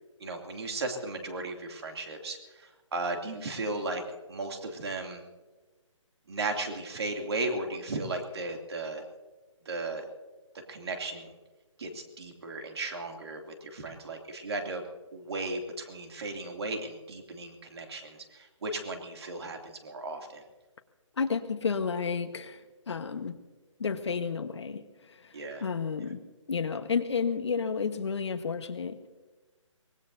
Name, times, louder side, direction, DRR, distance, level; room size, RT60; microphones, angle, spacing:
voice 1, 0.2-4.0 4.3-5.2 6.3-9.0 9.7-10.0 10.7-11.3 11.8-14.8 15.1-20.4 25.3-25.6, right 2 dB, 50° right, 3 dB, 2.7 m, -35 dB
voice 2, 21.2-23.3 23.8-26.2 26.5-29.1, left 5 dB, 55° left, 8 dB, 1.3 m, -31 dB
24.0 x 19.5 x 2.7 m, 1.2 s
hypercardioid pair, 170°, 17 cm